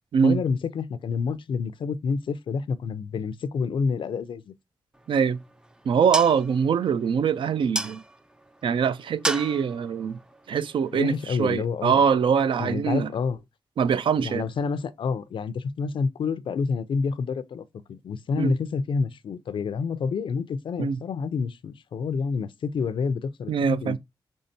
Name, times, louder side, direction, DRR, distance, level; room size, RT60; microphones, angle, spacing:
voice 1, 0.2-4.5 10.9-12.0 12.6-13.4 14.2-24.0, left 5 dB, 80° left, 0.5 m, -28 dB
sound 1, 4.9-11.4, right 1 dB, 10° right, 0.3 m, -36 dB
voice 2, 5.1-5.4 5.9-8.0 8.6-10.2 10.5-13.1 13.8-14.4 18.4-18.6 20.8-21.0 23.5-24.0, right 6 dB, 90° right, 0.4 m, -23 dB
5.5 x 3.4 x 2.6 m
wide cardioid pair, 135°, 8 cm